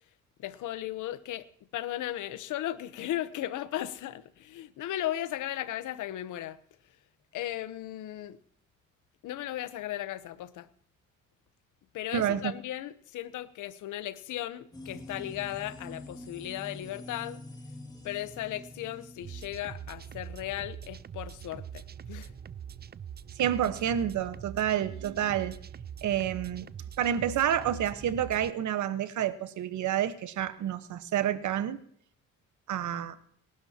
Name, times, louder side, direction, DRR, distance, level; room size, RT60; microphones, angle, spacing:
voice 1, 0.4-1.5 1.7-6.6 7.3-8.4 9.2-10.7 11.9-17.4 18.0-22.3, left 13 dB, 85° left, 1.0 m, -36 dB
voice 2, 12.1-12.5 23.4-25.5 26.0-26.7 27.0-31.8 32.7-33.2, right 10 dB, 70° right, 1.3 m, -29 dB
sound 1, 14.7-20.0, left 2 dB, 15° left, 2.7 m, -46 dB
sound 2, 19.2-28.5, right 8 dB, 30° right, 0.6 m, -43 dB
29.0 x 12.0 x 2.9 m
cardioid pair, 90°, 30 cm